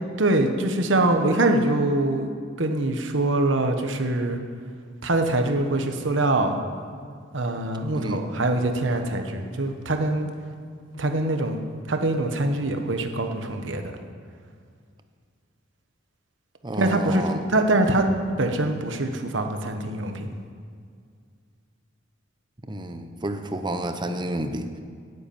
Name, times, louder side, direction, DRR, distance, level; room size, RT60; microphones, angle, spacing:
voice 1, 0.2-2.3 2.6-4.4 5.0-6.6 7.3-10.3 10.9-11.6 11.9-13.9 16.8-17.2 17.5-18.1 18.4-20.3, right 2 dB, 70° right, 5 dB, 1.2 m, -23 dB
voice 2, 16.6-17.4 22.7-24.8, right 1 dB, 25° right, 7 dB, 0.8 m, -30 dB
9.8 x 8.0 x 8.8 m, 2.1 s
head